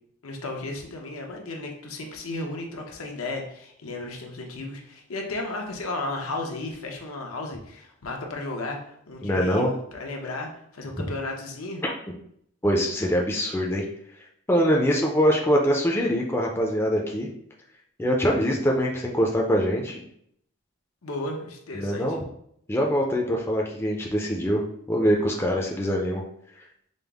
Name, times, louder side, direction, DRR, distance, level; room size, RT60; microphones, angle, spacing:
voice 1, 0.2-11.8 21.0-22.2, left 2 dB, 90° left, 1 dB, 0.8 m, -34 dB
voice 2, 9.2-9.7 11.8-11.9 12.6-13.8 14.5-17.3 18.0-20.0 21.7-22.2 22.7-26.2, equal, 10° left, 0 dB, 0.4 m, -23 dB
5.2 x 2.0 x 3.4 m, 0.71 s
head